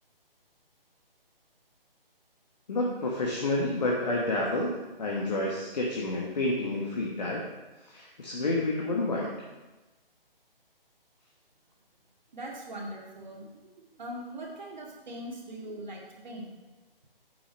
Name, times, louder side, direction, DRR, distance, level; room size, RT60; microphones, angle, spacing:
voice 1, 2.7-7.4 7.9-9.3, left 2 dB, 45° left, -2 dB, 1.4 m, -29 dB
voice 2, 12.3-16.5, right 1 dB, 50° right, -1 dB, 2.1 m, -41 dB
9.9 x 5.7 x 5.4 m, 1.1 s
figure-of-eight pair, 145°, 29 cm